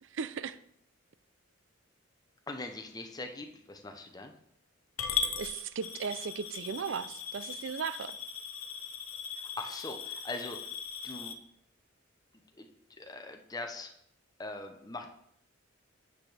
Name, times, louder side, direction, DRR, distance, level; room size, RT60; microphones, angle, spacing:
voice 1, 0.0-0.6 5.4-8.2, right 6 dB, 65° right, 15 dB, 0.4 m, -37 dB
voice 2, 2.5-4.3 9.3-10.7 11.0-11.4 12.6-12.7 13.0-13.9 14.4-15.1, left 2 dB, 20° left, 5 dB, 0.7 m, -41 dB
Coin (dropping) / Glass, 5.0-11.3, left 7 dB, 90° left, 0.8 m, -38 dB
8.7 x 6.2 x 3.4 m, 0.71 s
head